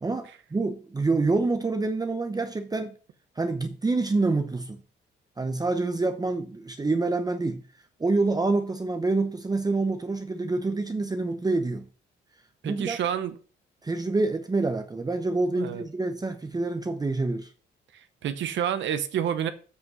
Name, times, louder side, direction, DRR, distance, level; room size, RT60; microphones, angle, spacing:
voice 1, 0.0-2.9 3.4-4.8 5.4-7.6 8.0-11.9 12.6-13.0 13.8-17.5, right 3 dB, 20° right, 0.8 m, -27 dB
voice 2, 12.6-13.4 15.5-15.8 17.9-19.5, right 9 dB, 70° right, 0.9 m, -29 dB
8.1 x 5.5 x 5.4 m
cardioid pair, 90°, 20 cm